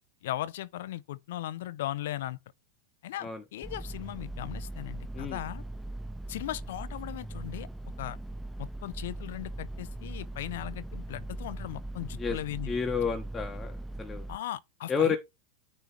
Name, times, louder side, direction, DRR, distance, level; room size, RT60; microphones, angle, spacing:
voice 1, 0.2-2.4 3.0-5.6 6.3-7.7 8.0-8.2 8.6-12.7 14.3-15.2, left 13 dB, 70° left, 0.6 m, -38 dB
sound 1, 3.6-14.4, right 1 dB, 5° right, 0.6 m, -40 dB
voice 2, 12.7-14.3 14.9-15.2, left 6 dB, 20° left, 1.3 m, -30 dB
9.6 x 3.3 x 4.4 m
hypercardioid pair, 105°, 0 cm